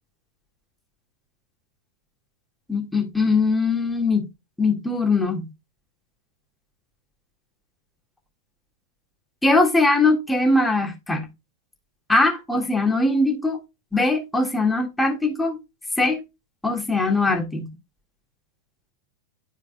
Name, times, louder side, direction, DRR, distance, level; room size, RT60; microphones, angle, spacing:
voice 1, 2.7-4.3 4.6-5.5 9.4-11.3 12.1-13.6 13.9-15.6 16.0-16.2 16.6-17.7, left 2 dB, 5° left, 1.8 m, -21 dB
12.5 x 4.6 x 2.2 m
figure-of-eight pair, 90°, 0 cm